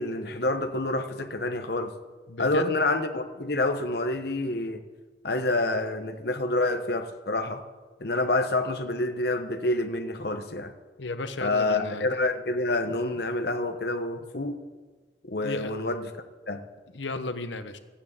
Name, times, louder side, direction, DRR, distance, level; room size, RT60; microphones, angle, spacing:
voice 1, 0.0-1.9 2.4-4.8 5.2-7.6 8.0-10.7 11.4-14.6 15.3-16.1 16.5-16.6, left 2 dB, 60° left, 8 dB, 1.2 m, -27 dB
voice 2, 2.3-2.8 11.0-12.1 15.4-15.7 16.9-17.8, left 2 dB, 85° left, 10 dB, 1.1 m, -33 dB
13.5 x 9.2 x 8.9 m, 1.4 s
head